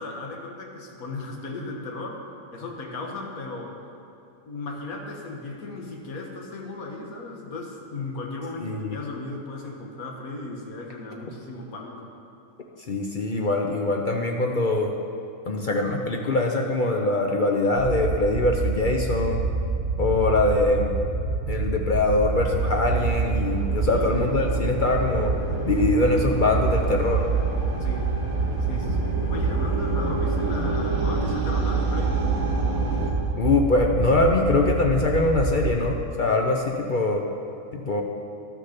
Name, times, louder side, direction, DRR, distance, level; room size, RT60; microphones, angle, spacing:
voice 1, 0.0-2.2 2.5-3.8 4.5-12.1 23.8-24.2 27.8-28.1 28.6-32.2, left 3 dB, 70° left, 1 dB, 1.7 m, -36 dB
voice 2, 8.6-9.0 12.9-14.9 15.5-19.4 20.0-20.9 21.5-25.3 25.6-27.2 33.4-37.2 37.7-38.0, left 2 dB, 50° left, 1 dB, 0.6 m, -23 dB
sound 1, 17.8-35.8, right 4 dB, 60° right, 1.3 m, -27 dB
sound 2, 22.3-33.1, right 1 dB, 30° right, 1.3 m, -32 dB
12.0 x 6.4 x 5.8 m, 2.7 s
omnidirectional pair, 1.6 m